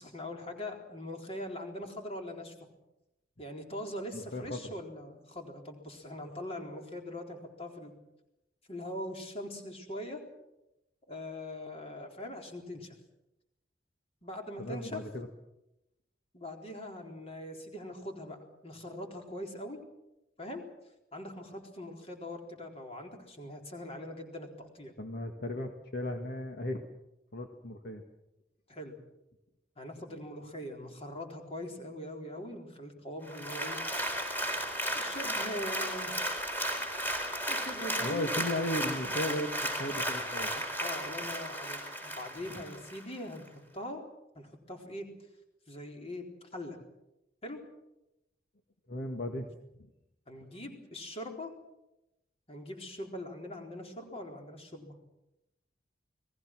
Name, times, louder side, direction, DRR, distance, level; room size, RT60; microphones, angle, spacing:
voice 1, 0.0-2.5 3.4-7.9 8.7-10.2 11.1-13.0 14.2-15.0 16.3-19.8 20.4-20.6 21.1-24.9 28.7-29.0 29.8-34.0 35.0-36.1 37.5-38.3 40.8-44.0 44.3-45.1 45.7-46.8 47.4-47.6 50.3-51.5 52.5-55.0, left 1 dB, 35° left, 3 dB, 4.1 m, -42 dB
voice 2, 4.1-4.7 14.6-15.3 25.0-26.8 27.3-28.0 38.0-40.5 48.9-49.5 49.8-49.9, left 1 dB, 55° left, 4 dB, 1.8 m, -36 dB
Applause, 33.3-43.0 43.5-43.6, equal, 10° left, 4.1 m, -34 dB
30.0 x 19.5 x 6.1 m, 0.90 s
head